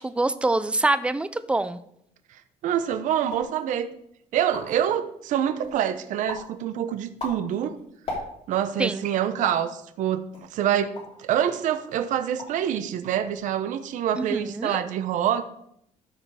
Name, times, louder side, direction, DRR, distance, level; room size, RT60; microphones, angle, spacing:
voice 1, 0.0-1.8 8.8-9.0 14.2-14.8, right 2 dB, 10° right, 14 dB, 0.4 m, -25 dB
voice 2, 2.3-3.9 4.3-7.8 8.5-10.9 11.2-15.4, right 10 dB, 65° right, 10 dB, 0.7 m, -26 dB
sound 1, 3.2-3.6 4.1-4.2 4.4-4.9 5.4-5.8 6.3-6.5 7.0-8.6 9.4-9.7 10.3-11.2 11.6-11.8 12.2-12.7 12.9-13.4, left 2 dB, 45° left, 2.8 m, -37 dB
13.0 x 5.0 x 4.8 m, 0.73 s
cardioid pair, 165°, 14 cm